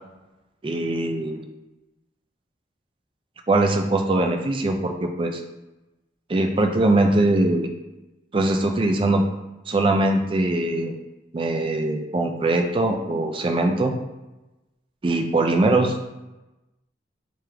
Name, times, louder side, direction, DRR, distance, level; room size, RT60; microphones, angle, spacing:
voice 1, 0.6-1.4 3.5-5.4 6.3-7.7 8.3-9.3 9.7-10.9 11.3-13.9 15.0-16.0, right 2 dB, 30° right, 4 dB, 0.3 m, -21 dB
3.7 x 3.0 x 3.3 m, 1.0 s
head